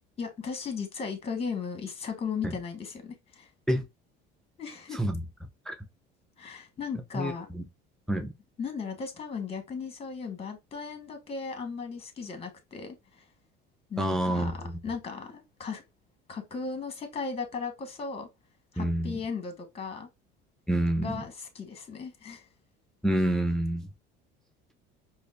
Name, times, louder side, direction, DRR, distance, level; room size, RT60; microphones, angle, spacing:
voice 1, 0.2-3.5 4.6-5.0 6.4-7.5 8.6-13.3 13.9-14.6 14.8-15.8 16.3-18.3 18.7-20.1 21.0-22.4, left 5 dB, 30° left, 1.2 m, -36 dB
voice 2, 4.9-5.2 5.7-5.8 7.1-7.6 8.1-8.3 14.0-14.8 18.8-19.2 20.7-21.2 23.0-23.9, right 1 dB, 5° left, 0.4 m, -28 dB
4.9 x 2.1 x 2.3 m
supercardioid pair, 105°, 21 cm